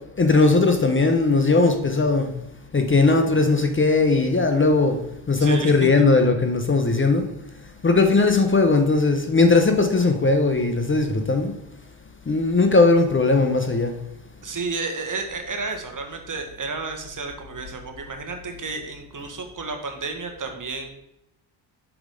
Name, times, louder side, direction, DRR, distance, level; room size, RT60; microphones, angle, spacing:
voice 1, 0.2-2.3 2.7-5.0 5.3-7.2 7.8-11.5 12.3-13.9, left 3 dB, 25° left, 6 dB, 1.0 m, -18 dB
voice 2, 5.3-5.9 14.4-21.0, right 3 dB, 40° right, 5 dB, 1.5 m, -32 dB
6.2 x 4.7 x 5.1 m, 0.83 s
supercardioid pair, 60°, 50 cm